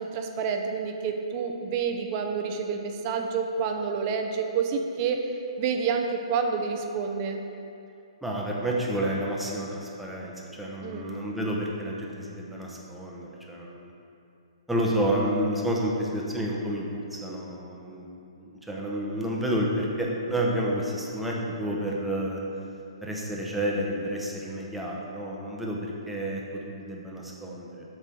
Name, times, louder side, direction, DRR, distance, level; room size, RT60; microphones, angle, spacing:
voice 1, 0.0-7.4 10.8-11.1, right 5 dB, 30° right, 4 dB, 0.6 m, -29 dB
voice 2, 8.2-13.9 14.7-18.1 18.4-22.4 23.0-27.8, right 1 dB, ahead, -4 dB, 0.8 m, -30 dB
7.6 x 3.3 x 6.0 m, 2.8 s
hypercardioid pair, 145°, 3 cm